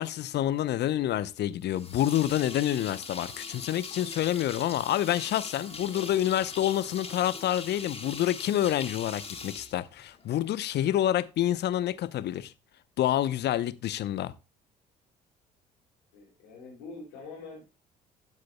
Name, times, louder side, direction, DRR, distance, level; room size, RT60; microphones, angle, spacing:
voice 1, 0.0-12.5 13.0-14.3, left 12 dB, 55° left, 0.8 m, -28 dB
sound 1, 1.7-10.5, left 4 dB, 30° left, 2.9 m, -42 dB
voice 2, 5.6-6.2 16.1-17.6, left 3 dB, 80° left, 5.2 m, -45 dB
16.5 x 7.6 x 2.2 m
hypercardioid pair, 55°, 21 cm